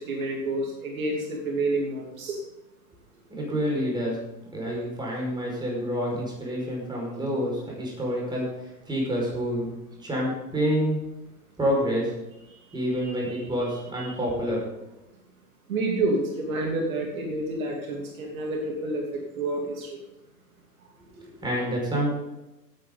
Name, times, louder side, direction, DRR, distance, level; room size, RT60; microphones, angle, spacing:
voice 1, 0.0-2.4 4.7-4.8 12.5-12.6 13.0-13.4 14.0-14.1 15.7-20.0, right 2 dB, 55° right, 0 dB, 2.9 m, -29 dB
voice 2, 3.3-4.2 4.5-9.7 10.0-11.0 11.6-12.1 12.7-14.6 21.2-22.1, equal, 10° right, -2 dB, 5.3 m, -28 dB
17.5 x 9.5 x 4.0 m, 0.96 s
figure-of-eight pair, 110°, 49 cm